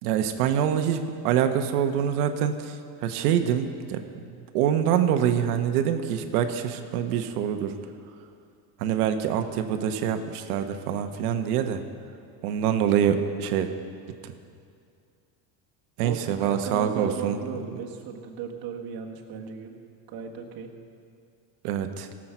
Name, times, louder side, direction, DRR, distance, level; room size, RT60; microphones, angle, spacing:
voice 1, 0.0-2.8 3.0-4.0 4.5-7.7 8.8-11.8 12.4-13.7 14.2-14.3 16.0-17.4 21.6-22.1, right 9 dB, 85° right, 7 dB, 1.1 m, -25 dB
voice 2, 16.0-19.7 20.1-20.7, right 6 dB, 50° right, 1 dB, 1.8 m, -36 dB
17.5 x 7.5 x 6.1 m, 2.3 s
supercardioid pair, 130°, 44 cm